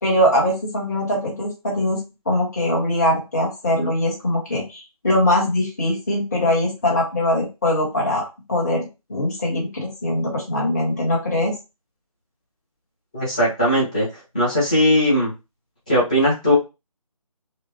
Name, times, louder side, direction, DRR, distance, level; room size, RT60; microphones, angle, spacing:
voice 1, 0.0-8.2 8.5-11.5, left 1 dB, 25° left, -4 dB, 1.4 m, -22 dB
voice 2, 13.1-14.1 14.3-15.3 15.9-16.5, equal, 10° left, -8 dB, 0.8 m, -18 dB
5.8 x 2.2 x 2.9 m, 0.27 s
figure-of-eight pair, 175°, 19 cm